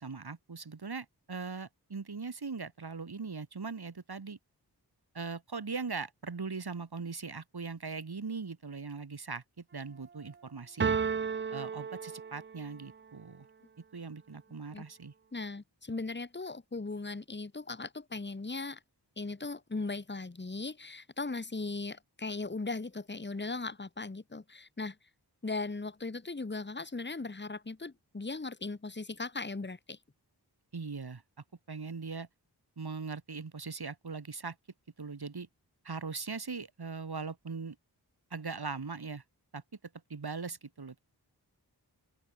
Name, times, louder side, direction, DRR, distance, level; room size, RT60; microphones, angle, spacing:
voice 1, 0.0-4.4 5.1-10.9 11.5-13.5 13.9-15.1 30.7-31.2 31.7-32.3 32.8-34.6 35.0-35.5 35.8-37.8 38.3-39.2 39.5-39.6 40.1-41.0, right 4 dB, 65° right, 2.7 m, -40 dB
sound 1, 10.8-12.7, right 6 dB, 30° right, 0.4 m, -32 dB
voice 2, 15.3-18.8 19.2-25.0 25.4-30.0, left 3 dB, 25° left, 1.4 m, -38 dB
open air
wide cardioid pair, 65°, 40 cm